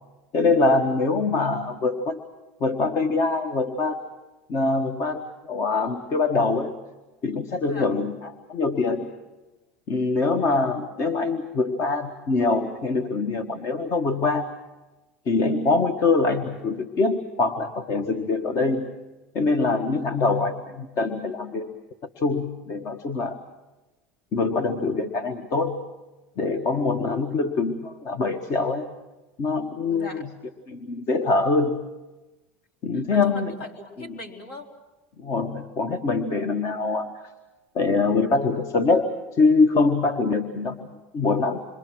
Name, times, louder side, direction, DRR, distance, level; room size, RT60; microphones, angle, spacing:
voice 1, 0.3-2.2 2.6-4.0 4.5-6.7 7.2-9.1 9.9-14.5 15.2-18.9 19.3-21.7 22.2-23.4 24.3-25.8 26.4-28.9 29.4-30.3 30.7-31.8 32.8-33.6 35.2-37.1 37.7-40.9 41.1-41.6, left 3 dB, 45° left, 8 dB, 1.5 m, -24 dB
voice 2, 29.9-30.2 32.9-34.7, left 2 dB, 65° left, 2 dB, 3.9 m, -40 dB
27.5 x 23.5 x 6.3 m, 1.1 s
hypercardioid pair, 90°, 7 cm